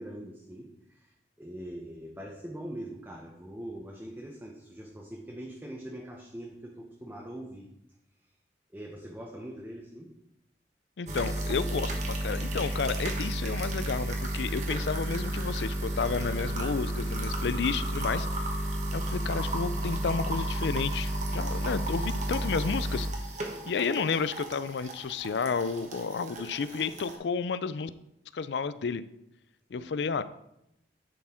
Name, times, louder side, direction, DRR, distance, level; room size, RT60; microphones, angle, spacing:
voice 1, 0.0-7.7 8.7-10.1 23.5-23.7 29.7-29.9, right 1 dB, 10° right, -1 dB, 0.8 m, -42 dB
voice 2, 11.0-18.5 18.9-23.1 23.7-27.9 28.3-29.0 29.7-30.2, left 5 dB, 75° left, 14 dB, 0.4 m, -31 dB
sound 1, 11.1-27.2, right 1 dB, 40° right, 1.2 m, -32 dB
10.5 x 4.4 x 4.4 m, 0.81 s
head